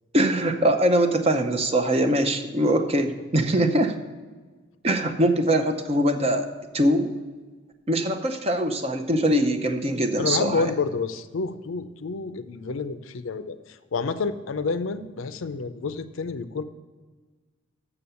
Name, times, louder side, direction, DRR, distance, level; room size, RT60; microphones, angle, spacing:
voice 1, 0.1-4.0 4.8-6.5 6.7-7.1 7.9-10.7, right 1 dB, 30° right, 6 dB, 0.6 m, -22 dB
voice 2, 10.2-16.6, left 4 dB, 70° left, 12 dB, 0.5 m, -29 dB
6.9 x 6.8 x 6.9 m, 1.4 s
head